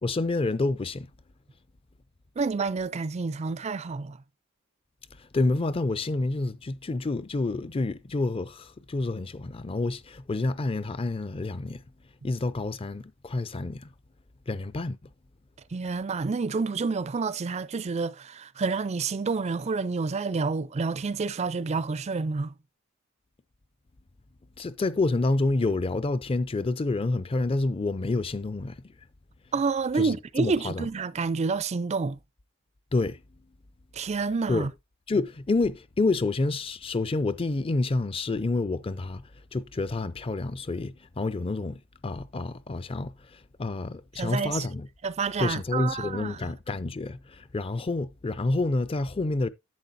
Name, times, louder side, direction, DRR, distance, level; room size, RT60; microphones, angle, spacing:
voice 1, 0.0-1.1 5.2-11.8 12.2-13.9 14.5-15.0 24.6-28.8 30.0-30.9 32.9-33.2 34.5-34.7 35.1-39.2 39.5-44.9 45.4-49.5, left 2 dB, 25° left, 0.5 m, -28 dB
voice 2, 2.4-4.2 15.7-22.5 29.5-32.2 33.9-34.7 44.2-44.7 45.0-46.5, right 4 dB, 30° right, 0.4 m, -29 dB
10.5 x 7.9 x 2.6 m
head